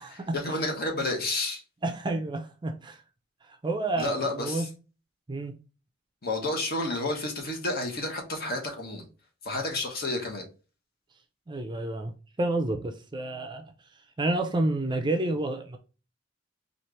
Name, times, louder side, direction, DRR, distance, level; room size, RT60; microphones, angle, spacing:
voice 1, 0.1-1.6 4.0-4.7 6.2-9.1 9.4-10.4, left 2 dB, 50° left, 1.2 m, -30 dB
voice 2, 1.8-3.0 3.6-4.7 5.3-5.6 11.5-12.1 12.4-13.6 14.2-15.8, right 2 dB, 25° right, 0.5 m, -29 dB
4.2 x 2.5 x 3.2 m
head